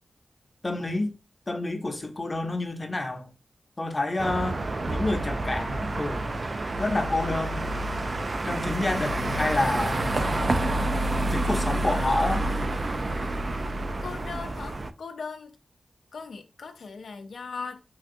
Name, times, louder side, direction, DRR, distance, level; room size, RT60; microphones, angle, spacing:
voice 1, 0.6-1.2 1.5-3.3 3.8-4.6 4.9-6.2 6.8-7.7 8.4-10.1 11.3-12.5, left 2 dB, 35° left, 0.7 m, -28 dB
sound 1, 4.2-14.9, right 2 dB, 45° right, 0.3 m, -28 dB
voice 2, 14.0-15.6 16.1-17.8, left 5 dB, 85° left, 0.5 m, -39 dB
4.6 x 2.3 x 2.5 m
cardioid pair, 60°, 0 cm